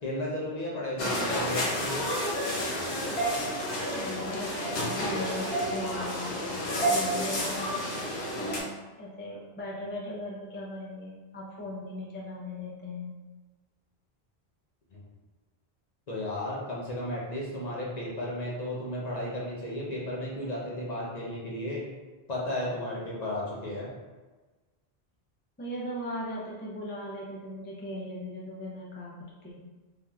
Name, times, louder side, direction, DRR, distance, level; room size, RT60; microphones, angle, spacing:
voice 1, 0.0-2.0 14.9-15.0 16.1-21.8 22.3-23.9, left 1 dB, 45° left, -5 dB, 0.7 m, -34 dB
sound 1, 1.0-8.6, equal, 85° left, 0.9 m, -30 dB
voice 2, 3.9-7.9 8.4-8.7 9.0-13.2 25.6-29.6, left 1 dB, 15° left, -5 dB, 0.4 m, -38 dB
3.4 x 2.7 x 2.3 m, 1.3 s
omnidirectional pair, 1.0 m